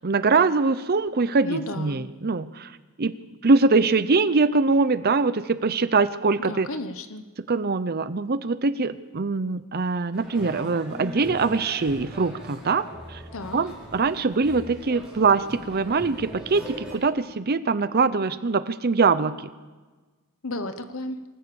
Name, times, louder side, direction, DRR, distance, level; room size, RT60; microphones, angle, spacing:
voice 1, 0.0-3.1 3.4-6.7 7.5-12.8 13.1-13.2 13.5-19.5, right 4 dB, 45° right, 13 dB, 0.6 m, -23 dB
voice 2, 1.4-2.1 6.5-7.2 13.3-13.6 20.4-21.2, left 1 dB, 65° left, 10 dB, 1.1 m, -33 dB
sound 1, 10.1-16.9, equal, 5° right, 6.0 m, -40 dB
26.5 x 14.5 x 7.0 m, 1.3 s
head